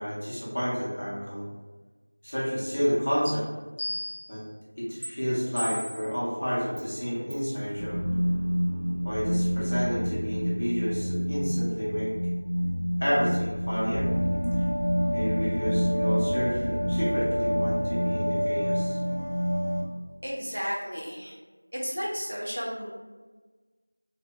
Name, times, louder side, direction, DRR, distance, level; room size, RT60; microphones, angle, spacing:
voice 1, 0.0-1.4 2.2-3.4 4.3-4.4 4.8-8.0 9.0-12.1 13.0-14.1 14.6-14.7 15.1-19.0, equal, 25° left, -8 dB, 0.6 m, -30 dB
sound 1, 3.3-3.4 3.8-4.4 5.0-5.1 5.6-6.1 6.8-6.9 7.3-7.5, equal, 80° right, 1.0 m, -34 dB
sound 2, 7.8-19.8, equal, 75° left, 0.8 m, -27 dB
voice 2, 20.2-21.4 21.7-22.9, equal, 45° right, -4 dB, 0.5 m, -33 dB
2.5 x 2.1 x 2.4 m, 1.3 s
figure-of-eight pair, 180°, 0 cm